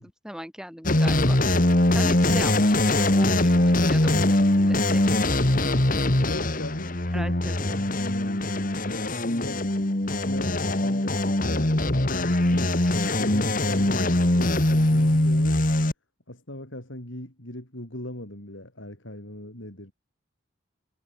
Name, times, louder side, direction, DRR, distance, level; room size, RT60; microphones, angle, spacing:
voice 1, 0.0-1.4 1.9-5.2 7.1-7.8 12.8-13.0, equal, 5° right, 6.6 m, -39 dB
sound 1, 0.9-15.9, left 1 dB, 45° left, 1.9 m, -22 dB
voice 2, 6.2-9.7 10.2-15.7 16.3-19.9, left 1 dB, 70° left, 5.9 m, -39 dB
head